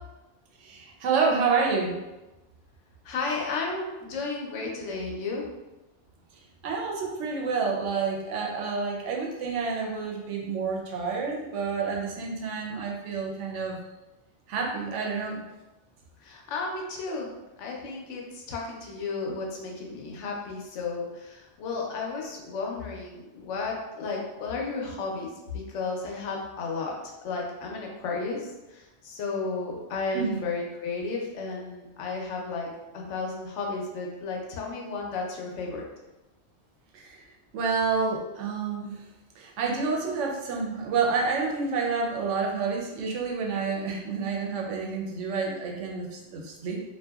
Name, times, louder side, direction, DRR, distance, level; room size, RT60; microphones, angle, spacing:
voice 1, 0.6-2.0 6.6-13.8 14.5-15.4 30.1-30.4 36.9-37.2 37.5-39.0 39.4-46.8, right 4 dB, 90° right, 0 dB, 0.9 m, -29 dB
voice 2, 3.0-5.4 8.1-8.2 16.2-17.3 17.6-32.7 32.9-35.8, left 4 dB, 85° left, -1 dB, 0.9 m, -33 dB
2.7 x 2.4 x 2.2 m, 1.0 s
omnidirectional pair, 1.2 m